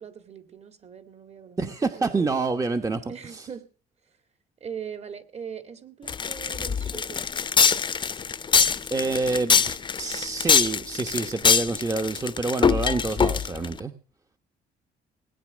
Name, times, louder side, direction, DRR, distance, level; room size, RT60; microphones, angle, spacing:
voice 1, 0.0-2.4 3.1-3.7 4.6-7.7, right 7 dB, 40° right, 10 dB, 2.2 m, -41 dB
voice 2, 1.6-3.5 8.9-13.9, right 3 dB, 20° right, 7 dB, 1.1 m, -27 dB
sound 1, 6.1-13.7, left 6 dB, 30° left, 0.8 m, -23 dB
19.0 x 9.7 x 6.3 m, 0.38 s
cardioid pair, 110°, 17 cm